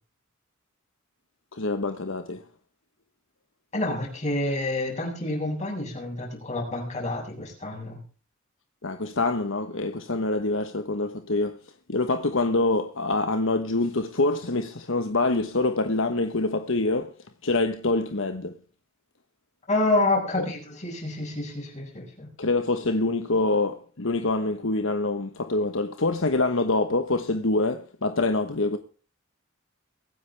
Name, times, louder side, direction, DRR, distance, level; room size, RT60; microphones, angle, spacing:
voice 1, 1.5-2.4 8.8-11.6 11.9-17.1 17.4-18.6 20.4-20.5 22.4-28.8, left 2 dB, 65° left, 1.2 m, -25 dB
voice 2, 3.7-8.0 19.7-22.3, left 2 dB, 35° left, 7.8 m, -28 dB
23.5 x 10.0 x 3.5 m
head